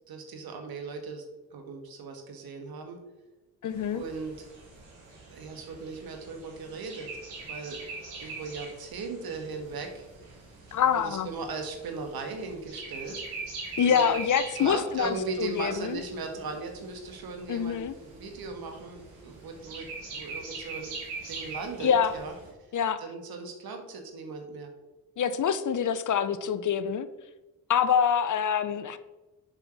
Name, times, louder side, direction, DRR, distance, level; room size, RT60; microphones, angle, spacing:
voice 1, 0.1-1.2 1.5-3.0 3.9-4.5 5.3-7.8 8.2-10.1 10.9-13.2 13.8-14.1 14.6-21.0 21.3-22.3 23.0-24.7, right 4 dB, 65° right, 4 dB, 1.8 m, -38 dB
voice 2, 3.6-4.0 10.7-11.3 13.8-16.0 17.5-17.9 21.8-22.1 22.7-23.0 25.2-27.1 27.7-29.0, left 8 dB, 50° left, 13 dB, 0.7 m, -26 dB
sound 1, 3.7-22.5, right 3 dB, 85° right, 2.4 m, -43 dB
6.8 x 5.6 x 6.0 m, 1.1 s
hypercardioid pair, 45°, 39 cm